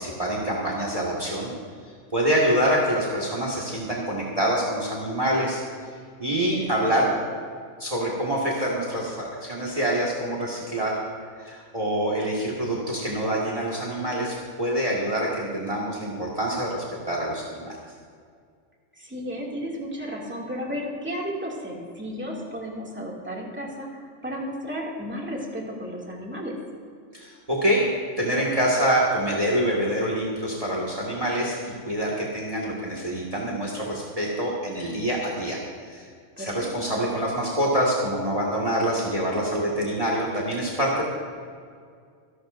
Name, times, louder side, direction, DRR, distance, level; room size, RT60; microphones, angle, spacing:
voice 1, 0.0-1.5 2.1-5.6 6.2-7.0 7.8-11.0 11.4-17.7 27.1-27.8 28.2-35.6 35.9-36.1 36.4-41.0, right 1 dB, 30° right, -3 dB, 1.9 m, -26 dB
voice 2, 6.5-7.2 19.0-26.6 36.4-36.7, equal, 10° right, -3 dB, 2.4 m, -33 dB
27.0 x 11.5 x 2.6 m, 2.1 s
omnidirectional pair, 1.3 m